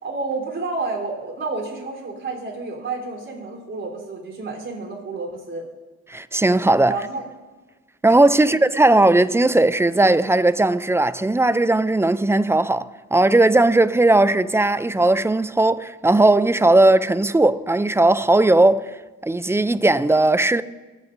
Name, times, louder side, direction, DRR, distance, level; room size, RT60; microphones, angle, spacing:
voice 1, 0.0-5.7 6.9-7.3 8.4-8.6, right 3 dB, 40° right, 3.7 m, -30 dB
voice 2, 6.1-6.9 8.0-19.0 19.2-20.6, right 2 dB, 10° right, 0.3 m, -17 dB
24.0 x 9.3 x 2.6 m
cardioid pair, 90°, 30 cm